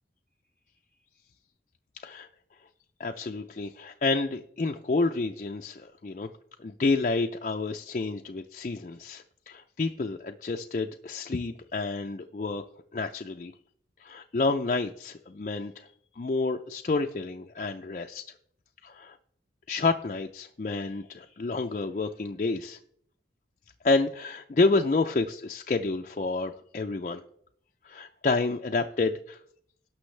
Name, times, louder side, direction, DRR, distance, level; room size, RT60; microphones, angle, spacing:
voice 1, 3.0-6.3 6.6-12.6 12.9-13.5 14.0-15.9 16.2-18.2 18.8-19.2 19.7-22.8 23.8-27.2 27.8-29.4, left 3 dB, 40° left, 3 dB, 0.4 m, -29 dB
17.5 x 6.2 x 3.3 m, 0.66 s
head